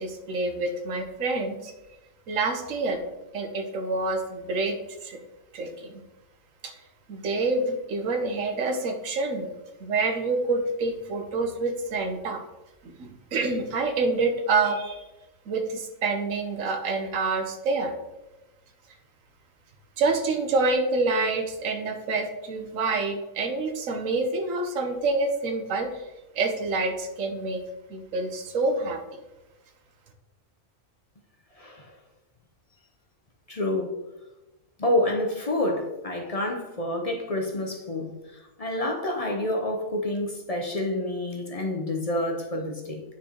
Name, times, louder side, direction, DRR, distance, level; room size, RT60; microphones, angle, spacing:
voice 1, 0.0-1.7 2.3-3.1 3.3-5.2 5.5-6.0 6.6-6.7 7.1-9.5 9.8-12.4 12.8-15.0 15.5-17.9 20.0-26.0 26.4-27.6 27.9-29.0, right 3 dB, 80° right, 5 dB, 1.2 m, -27 dB
voice 2, 31.5-32.0 33.5-33.9 34.8-43.0, left 1 dB, 40° left, 1 dB, 0.6 m, -28 dB
9.2 x 4.4 x 2.9 m, 1.0 s
omnidirectional pair, 1.3 m